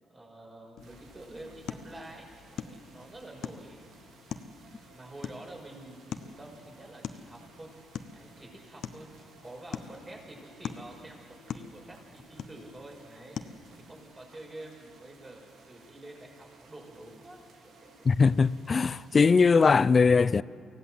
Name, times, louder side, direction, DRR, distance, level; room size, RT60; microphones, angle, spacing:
voice 1, 0.0-3.8 4.9-7.7 8.1-13.4 13.8-18.1, right 1 dB, 30° right, 6.1 m, -48 dB
sound 1, 0.8-14.2, left 7 dB, 70° left, 0.9 m, -44 dB
sound 2, 0.8-19.8, right 4 dB, 80° right, 2.6 m, -58 dB
voice 2, 18.1-20.4, left 5 dB, 40° left, 0.4 m, -21 dB
24.5 x 16.5 x 7.8 m
supercardioid pair, 65°, 0 cm